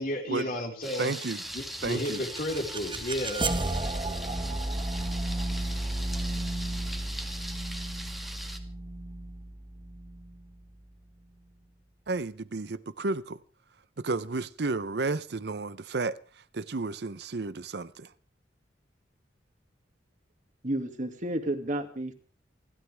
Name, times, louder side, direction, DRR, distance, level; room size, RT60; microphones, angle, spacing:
voice 1, 0.0-1.1 1.5-3.5, left 1 dB, 50° left, 4.3 m, -32 dB
Thunder, 0.8-8.6, right 1 dB, ahead, 1.7 m, -40 dB
voice 2, 1.0-1.4 1.8-2.2 12.1-13.4 14.0-16.2 16.5-18.1, right 3 dB, 65° right, 0.7 m, -32 dB
sound 1, 1.9-10.9, right 2 dB, 30° right, 1.5 m, -33 dB
voice 3, 20.6-22.1, right 1 dB, 45° right, 2.3 m, -31 dB
29.0 x 12.5 x 3.5 m
head